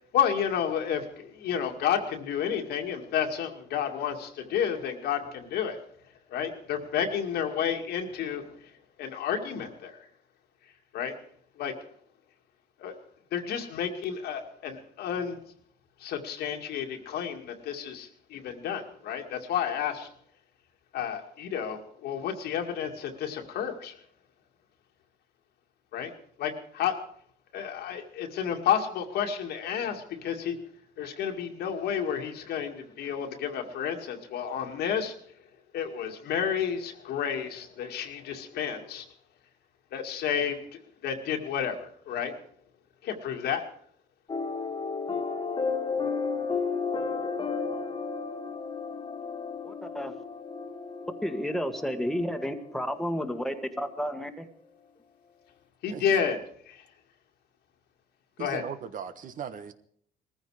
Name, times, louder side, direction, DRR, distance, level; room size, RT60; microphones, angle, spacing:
voice 1, 0.0-5.8 6.3-8.7 9.0-10.1 10.9-11.2 11.6-11.8 12.8-13.0 13.3-15.4 16.0-20.1 20.9-24.0 25.9-26.1 26.4-26.9 27.5-30.6 31.0-35.2 35.7-39.1 39.9-42.4 43.0-43.6 55.8-56.4 56.7-56.8 58.4-58.6, left 8 dB, 75° left, 4 dB, 2.2 m, -31 dB
sound 1, 44.3-53.7, left 5 dB, 30° left, 1.9 m, -33 dB
voice 2, 49.6-50.1 51.2-54.5, equal, ahead, 6 dB, 1.6 m, -31 dB
voice 3, 55.8-56.3 58.4-59.7, right 7 dB, 50° right, 11 dB, 1.3 m, -38 dB
19.5 x 14.5 x 4.9 m, 0.63 s
cardioid pair, 110°, 17 cm